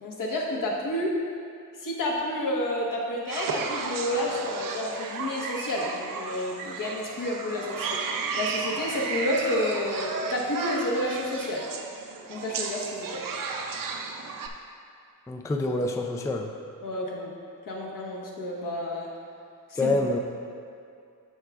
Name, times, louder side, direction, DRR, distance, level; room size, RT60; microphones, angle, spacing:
voice 1, 0.0-1.1 1.8-11.6 12.3-13.2 16.8-17.3 17.7-19.1 19.7-19.9, left 1 dB, 75° left, -3 dB, 1.3 m, -30 dB
sound 1, 3.3-14.5, right 4 dB, 80° right, 0.6 m, -33 dB
voice 2, 15.3-16.5 19.8-20.2, left 2 dB, 10° left, 2 dB, 0.3 m, -26 dB
14.0 x 4.8 x 2.4 m, 2.4 s
wide cardioid pair, 160°, 33 cm